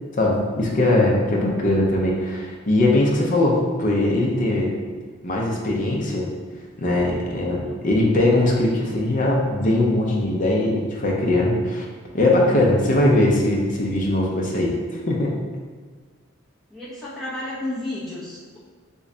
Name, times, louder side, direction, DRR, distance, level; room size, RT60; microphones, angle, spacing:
voice 1, 0.1-4.7 5.2-6.3 6.8-11.8 12.1-14.8 15.1-15.4, left 1 dB, 40° left, -2 dB, 0.6 m, -20 dB
voice 2, 7.4-7.8 16.7-18.6, left 1 dB, ahead, -10 dB, 0.9 m, -32 dB
3.1 x 2.3 x 3.7 m, 1.5 s
head